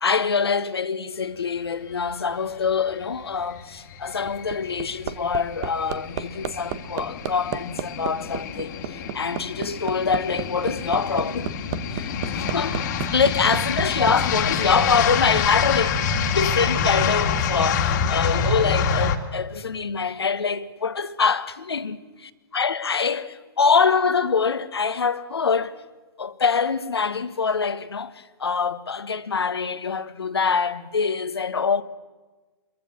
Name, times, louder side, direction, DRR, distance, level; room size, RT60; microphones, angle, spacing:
voice 1, 0.0-11.5 11.9-22.0 22.5-25.8 26.2-31.8, left 5 dB, 75° left, 1.4 m, -25 dB
sound 1, 3.4-19.2, left 6 dB, 45° left, 2.2 m, -26 dB
Hammer, 4.0-14.2 15.5-15.6, right 12 dB, 40° right, 1.2 m, -31 dB
27.5 x 23.0 x 6.2 m
figure-of-eight pair, 115°, 13 cm